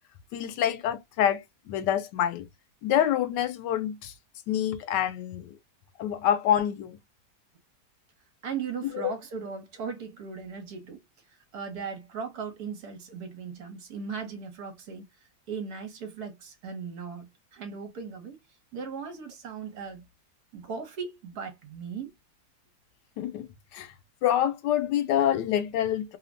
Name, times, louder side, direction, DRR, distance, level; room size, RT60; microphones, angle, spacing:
voice 1, 0.3-2.5 2.8-4.1 4.5-5.6 6.0-7.0 9.0-9.1 23.2-23.9 24.2-26.2, left 10 dB, 85° left, 1.2 m, -27 dB
voice 2, 8.4-18.4 18.7-20.1 20.5-22.1, right 6 dB, 65° right, 1.4 m, -38 dB
3.2 x 2.1 x 2.4 m
omnidirectional pair, 1.8 m